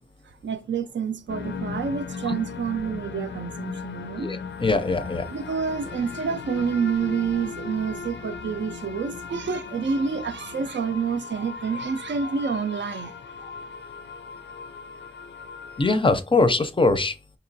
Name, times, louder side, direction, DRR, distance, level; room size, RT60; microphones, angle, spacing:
voice 1, 0.4-4.3 5.3-13.5, right 6 dB, 80° right, 0.5 m, -28 dB
sound 1, 1.3-16.0, left 5 dB, 90° left, 0.5 m, -37 dB
voice 2, 4.2-5.3 15.8-17.1, left 3 dB, 30° left, 0.4 m, -22 dB
5.3 x 2.9 x 2.7 m
wide cardioid pair, 115°, 18 cm